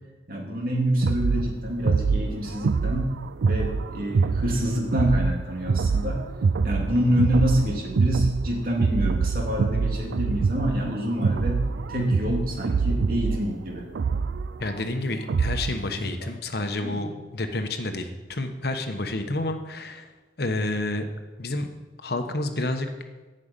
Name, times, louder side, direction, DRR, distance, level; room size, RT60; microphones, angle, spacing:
voice 1, 0.3-3.2 3.4-6.3 6.6-11.6 11.9-13.8 15.9-16.3 16.8-17.0, equal, 55° right, -1 dB, 2.6 m, -26 dB
sound 1, 1.0-15.8, right 5 dB, 80° right, 0.4 m, -25 dB
voice 2, 14.6-20.1 20.4-21.1 21.4-21.7 22.0-22.9, left 2 dB, 60° left, 6 dB, 1.1 m, -29 dB
10.5 x 6.6 x 9.0 m, 1.2 s
head